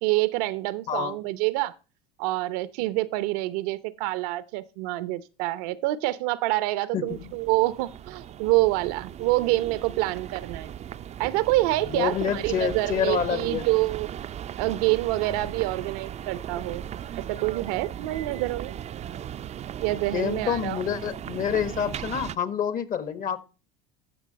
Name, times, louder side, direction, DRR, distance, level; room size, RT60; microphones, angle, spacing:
voice 1, 0.0-1.7 2.2-10.7 11.2-14.1 14.6-16.9 17.1-18.7 19.8-20.8, right 18 dB, 70° right, 0.8 m, -27 dB
voice 2, 6.9-7.3 11.9-13.7 20.1-23.4, left 8 dB, 40° left, 1.5 m, -27 dB
sound 1, 7.1-22.4, right 10 dB, 30° right, 0.5 m, -37 dB
14.5 x 6.0 x 4.0 m
supercardioid pair, 100°, 21 cm